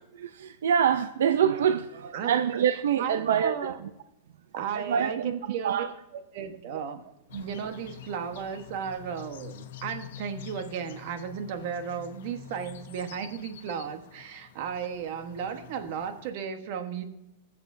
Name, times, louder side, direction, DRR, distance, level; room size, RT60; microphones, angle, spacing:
voice 1, 0.2-3.7 4.7-5.3 5.6-5.9, right 8 dB, 90° right, 0.4 m, -25 dB
voice 2, 3.0-3.8 4.5-5.9 6.1-7.0 7.3-17.0, right 7 dB, 55° right, 1.1 m, -34 dB
sound 1, 7.3-16.3, left 9 dB, 75° left, 1.0 m, -47 dB
19.0 x 7.1 x 2.6 m
supercardioid pair, 150°, 0 cm